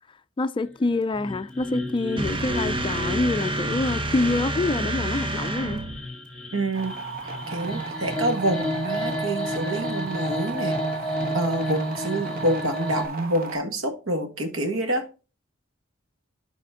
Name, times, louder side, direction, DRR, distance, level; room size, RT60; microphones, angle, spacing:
voice 1, 0.4-5.8, left 2 dB, 25° left, 0.3 m, -26 dB
sound 1, 1.1-13.1, equal, 5° left, 2.2 m, -32 dB
sound 2, 2.2-6.1, right 2 dB, 25° right, 0.7 m, -29 dB
voice 2, 6.5-6.9 7.5-10.8 11.3-15.0, right 1 dB, 70° right, 1.7 m, -27 dB
sound 3, 6.7-13.6, right 4 dB, 45° right, 1.4 m, -36 dB
12.0 x 4.2 x 3.7 m
head